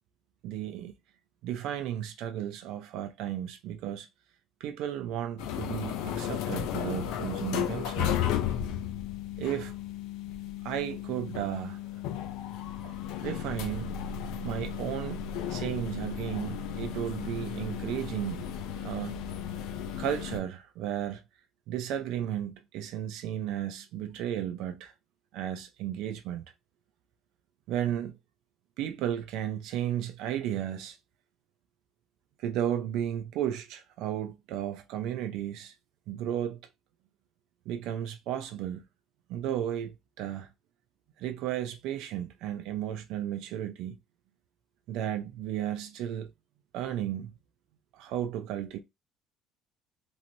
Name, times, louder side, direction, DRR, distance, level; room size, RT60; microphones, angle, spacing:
voice 1, 0.4-0.9 1.4-4.1 4.6-8.3 9.4-9.7 10.6-11.8 12.8-12.9 13.2-14.0 14.4-15.2 15.5-18.5 18.8-19.2 20.0-21.2 21.7-24.9 25.3-26.4 27.7-28.2 28.8-31.0 32.4-35.7 36.1-36.6 37.7-38.8 39.3-40.5 41.2-44.0 44.9-46.3 46.7-47.3 47.9-48.8, right 11 dB, 65° right, 0.5 m, -34 dB
sound 1, 5.4-20.4, left 9 dB, 80° left, 0.5 m, -34 dB
3.1 x 3.0 x 2.7 m
cardioid pair, 180°, 0 cm